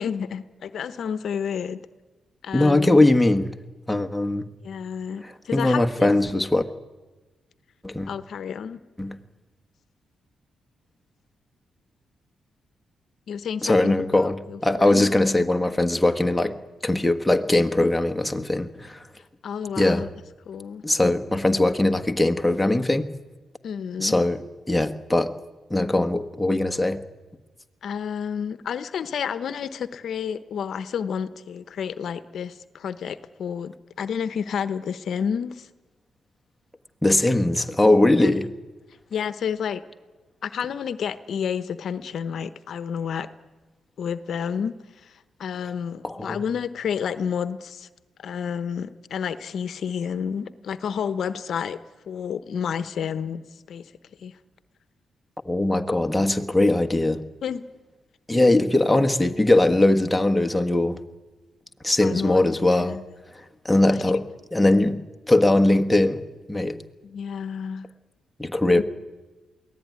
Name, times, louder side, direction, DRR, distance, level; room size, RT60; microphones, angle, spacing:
voice 1, 0.0-1.8 2.4-2.9 4.6-6.1 8.1-8.8 13.3-15.1 19.4-20.1 20.5-20.8 23.6-24.2 27.8-35.7 38.1-38.3 39.1-39.8 40.4-43.3 44.0-47.9 48.2-51.8 52.1-53.4 53.7-53.9 54.2-54.4 57.4-57.6 62.0-63.0 63.9-64.0 67.0-67.9 68.7-68.8, left 7 dB, 70° left, 13 dB, 0.9 m, -30 dB
voice 2, 2.5-3.5 3.9-4.5 5.2-6.6 7.8-8.1 9.0-9.2 13.6-16.6 16.8-19.0 19.8-20.1 20.8-23.1 24.0-24.4 24.7-25.3 25.7-27.0 37.0-38.5 46.0-46.4 55.4-57.2 58.3-61.0 61.8-63.0 63.6-66.2 66.5-66.8 68.4-68.8, left 2 dB, 5° left, 6 dB, 1.5 m, -20 dB
22.5 x 16.5 x 9.6 m, 1.2 s
cardioid pair, 70°, 0 cm